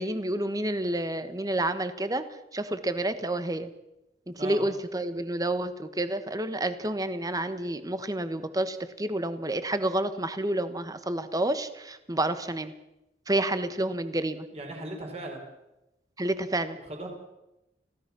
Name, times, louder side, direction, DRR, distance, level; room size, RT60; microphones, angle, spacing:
voice 1, 0.0-2.3 2.5-3.7 4.3-12.7 13.3-14.5 16.2-16.8, right 1 dB, 20° right, 11 dB, 1.3 m, -29 dB
voice 2, 14.5-15.4 16.9-17.1, right 1 dB, 35° right, 1 dB, 5.1 m, -37 dB
25.5 x 16.5 x 6.1 m, 0.92 s
head